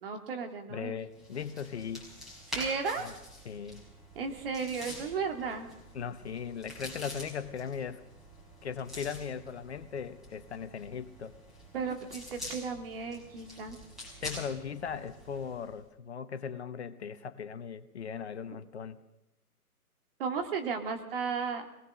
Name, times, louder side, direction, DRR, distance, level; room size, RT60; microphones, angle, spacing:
voice 1, 0.0-1.0 2.5-3.1 4.2-5.7 11.7-13.8 20.2-21.7, right 5 dB, 35° right, 5 dB, 2.5 m, -34 dB
voice 2, 0.7-2.1 3.0-3.1 3.4-3.8 5.9-8.0 8.6-11.3 14.2-19.0, left 7 dB, 45° left, 12 dB, 1.1 m, -38 dB
sound 1, 1.1-15.8, left 1 dB, ahead, 5.2 m, -46 dB
22.5 x 19.0 x 6.4 m, 0.90 s
hypercardioid pair, 145°, 46 cm